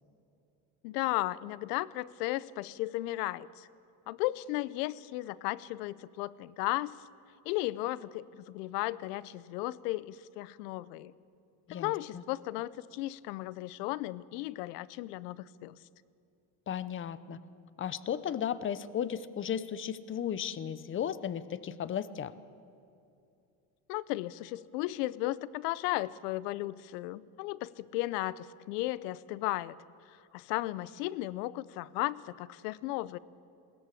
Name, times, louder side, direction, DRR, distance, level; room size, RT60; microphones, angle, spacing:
voice 1, 0.8-3.7 4.1-6.9 7.4-11.1 11.7-15.8 23.9-29.8 30.1-33.2, left 17 dB, 70° left, 20 dB, 0.8 m, -35 dB
voice 2, 11.7-12.2 16.7-17.4 17.8-22.3, left 9 dB, 25° left, 16 dB, 0.8 m, -35 dB
21.5 x 17.0 x 8.5 m, 2.6 s
supercardioid pair, 110°, 50 cm